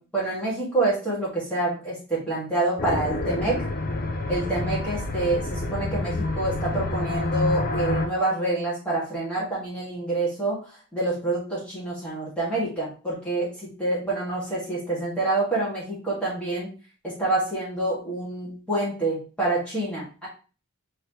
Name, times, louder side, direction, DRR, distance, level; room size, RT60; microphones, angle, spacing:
voice 1, 0.0-3.6 4.3-10.6 10.9-16.7 17.0-20.3, right 2 dB, 5° left, -7 dB, 1.9 m, -27 dB
sound 1, 2.8-8.1, left 2 dB, 40° left, 0.5 m, -28 dB
4.7 x 3.2 x 3.0 m, 0.35 s
head